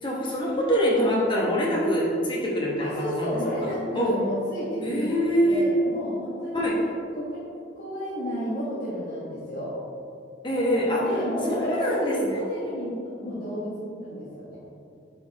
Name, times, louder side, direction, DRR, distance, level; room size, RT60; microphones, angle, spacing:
voice 1, 0.0-3.7 3.9-4.1 4.8-5.6 6.5-6.8 10.4-11.0 11.5-12.4, equal, 25° left, -4 dB, 1.1 m, -24 dB
voice 2, 2.8-6.6 7.1-7.4 7.8-9.7 11.0-14.6, equal, 50° left, -11 dB, 1.3 m, -31 dB
8.5 x 4.3 x 2.9 m, 2.5 s
head